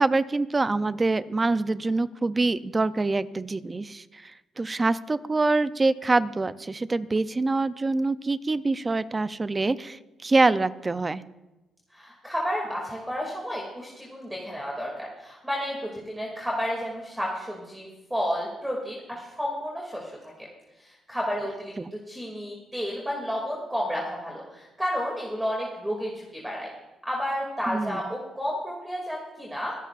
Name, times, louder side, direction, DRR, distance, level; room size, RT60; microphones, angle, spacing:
voice 1, 0.0-4.3 4.6-11.2 21.8-21.9 27.7-28.0, right 3 dB, 25° right, 14 dB, 0.5 m, -25 dB
voice 2, 11.9-20.5 20.8-26.7 27.1-29.7, equal, 5° right, -3 dB, 2.5 m, -31 dB
25.0 x 11.0 x 2.5 m, 1.0 s
cardioid pair, 90°, 0 cm